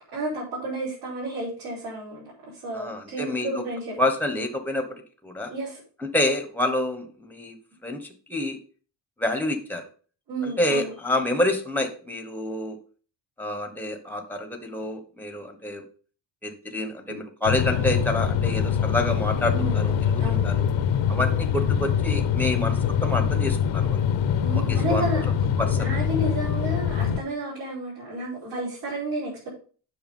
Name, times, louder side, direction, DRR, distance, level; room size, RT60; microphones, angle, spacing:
voice 1, 0.1-3.9 5.5-5.8 10.3-10.9 17.1-17.2 19.5-20.4 24.4-25.3 25.7-29.5, right 1 dB, 60° right, -7 dB, 4.9 m, -32 dB
voice 2, 2.7-3.6 4.0-5.5 6.0-8.6 9.2-9.8 10.4-12.8 13.4-15.8 16.4-20.7 21.1-24.0 24.5-25.1 25.6-26.0, left 1 dB, 5° left, 6 dB, 1.1 m, -28 dB
sound 1, 17.5-27.2, left 8 dB, 80° left, 0.9 m, -24 dB
7.9 x 6.1 x 5.4 m, 0.41 s
cardioid pair, 170°, 43 cm